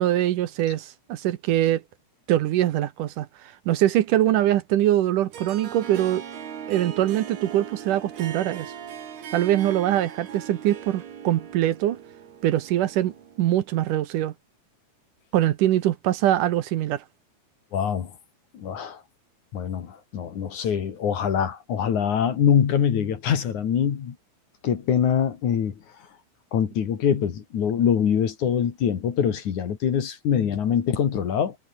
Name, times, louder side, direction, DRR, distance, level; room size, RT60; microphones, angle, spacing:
voice 1, 0.0-1.8 2.3-3.3 3.7-6.2 6.7-8.7 9.3-12.0 12.4-14.3 15.3-17.0, right 13 dB, 70° right, 2.3 m, -23 dB
Harp, 5.3-13.8, right 8 dB, 85° right, 5.0 m, -39 dB
voice 2, 17.7-18.1 18.5-19.0 19.5-24.1 24.6-25.8 26.5-31.6, left 8 dB, 55° left, 3.3 m, -24 dB
omnidirectional pair, 4.4 m